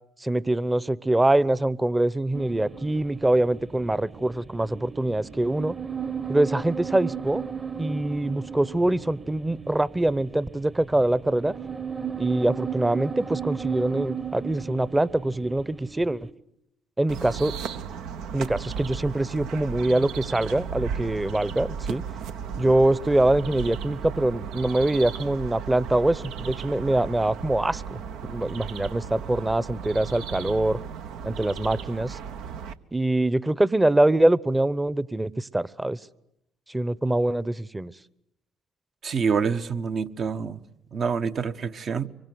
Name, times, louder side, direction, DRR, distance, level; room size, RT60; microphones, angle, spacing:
voice 1, 0.2-5.7 6.3-7.4 7.8-11.5 12.2-16.3 17.0-17.6 18.3-22.0 22.6-30.8 31.2-32.2 32.9-36.0 36.7-37.9, right 1 dB, 15° right, 0.9 m, -24 dB
sound 1, 2.3-16.3, right 6 dB, 30° right, 1.3 m, -35 dB
sound 2, 17.1-32.7, right 7 dB, 75° right, 1.1 m, -35 dB
voice 2, 39.0-40.6 40.9-42.1, right 6 dB, 50° right, 1.2 m, -26 dB
25.0 x 23.5 x 9.4 m
hypercardioid pair, 55°, 0 cm